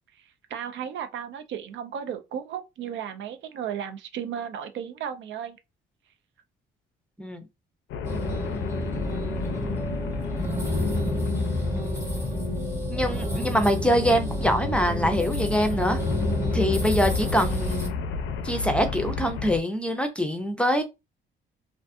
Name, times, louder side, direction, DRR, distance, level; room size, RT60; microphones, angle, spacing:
voice 1, 0.5-5.6, right 8 dB, 70° right, 0.5 m, -34 dB
sound 1, 7.9-19.6, left 5 dB, 80° left, 0.4 m, -33 dB
sound 2, 8.0-17.9, left 1 dB, 15° right, 1.0 m, -29 dB
voice 2, 12.9-16.0 16.5-17.8 18.4-20.8, equal, 5° left, 0.5 m, -24 dB
2.4 x 2.4 x 2.4 m
cardioid pair, 90°, 20 cm